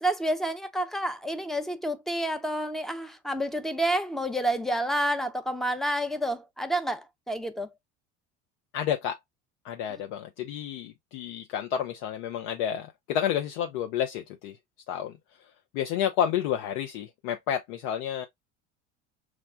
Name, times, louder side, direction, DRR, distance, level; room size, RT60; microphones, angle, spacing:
voice 1, 0.0-7.7, right 1 dB, ahead, 0.5 m, -29 dB
voice 2, 8.7-9.2 9.6-14.6 14.9-15.2 15.7-18.3, left 9 dB, 70° left, 0.5 m, -30 dB
6.0 x 2.1 x 2.3 m
hypercardioid pair, 70°, 36 cm